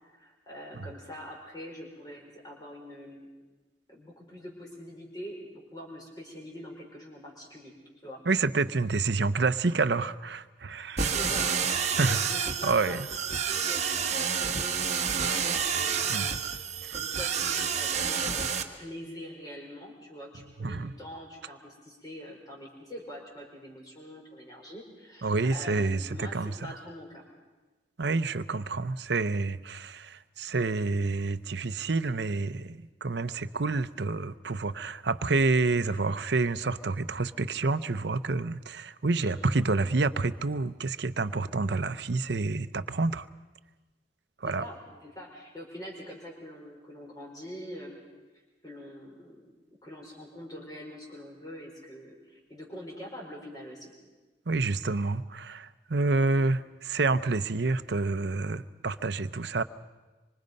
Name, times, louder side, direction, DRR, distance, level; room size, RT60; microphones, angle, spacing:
voice 1, 0.0-3.3 3.9-7.7 8.0-8.2 11.1-11.5 11.9-27.2 39.1-39.4 44.4-48.0 48.6-49.5 49.8-53.9 56.2-56.3, equal, 20° left, 4.9 m, -44 dB
voice 2, 8.3-11.1 12.0-12.2 12.6-13.1 16.1-16.3 16.8-16.9 20.6-20.9 25.2-26.7 28.0-43.3 44.4-44.6 54.5-59.6, right 3 dB, 70° right, 0.7 m, -28 dB
sound 1, 11.0-18.6, right 6 dB, 35° right, 1.3 m, -29 dB
25.5 x 25.5 x 5.4 m
head